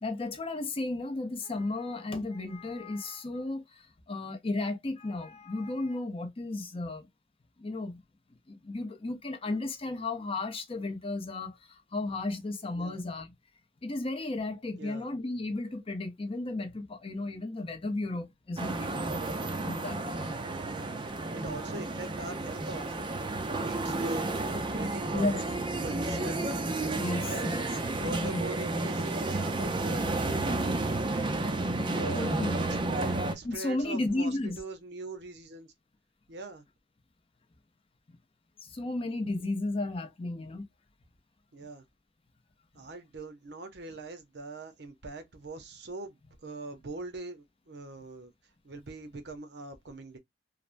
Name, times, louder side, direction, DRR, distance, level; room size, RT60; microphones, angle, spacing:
voice 1, 0.0-7.1 7.6-8.0 8.5-13.3 13.8-20.0 25.1-25.4 26.9-27.7 28.0-28.4 32.1-32.6 33.4-34.6 38.6-40.6, left 2 dB, 30° left, 0.6 m, -34 dB
voice 2, 14.8-15.1 20.6-20.9 21.3-23.1 23.6-24.3 24.7-26.6 27.2-27.5 28.0-30.1 31.9-32.4 32.7-35.7 36.3-36.6 41.5-41.8 42.7-48.3 48.6-50.2, right 2 dB, 65° right, 0.7 m, -42 dB
sound 1, 18.6-33.4, right 2 dB, 25° right, 0.4 m, -31 dB
3.2 x 2.0 x 2.5 m
head